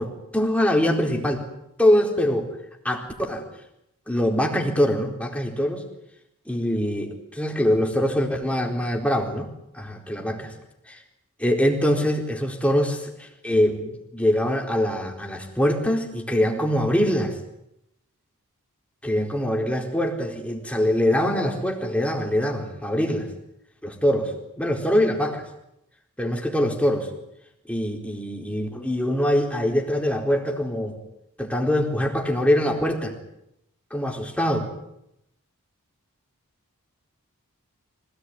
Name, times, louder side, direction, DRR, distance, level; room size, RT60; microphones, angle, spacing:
voice 1, 0.0-1.5 1.8-2.5 2.8-3.5 4.1-5.8 6.5-10.5 11.4-17.4 19.0-23.3 23.8-25.4 26.2-27.0 27.7-31.0 31.4-33.2 33.9-34.7, equal, 5° left, 2 dB, 4.2 m, -23 dB
25.5 x 18.5 x 9.6 m, 0.81 s
head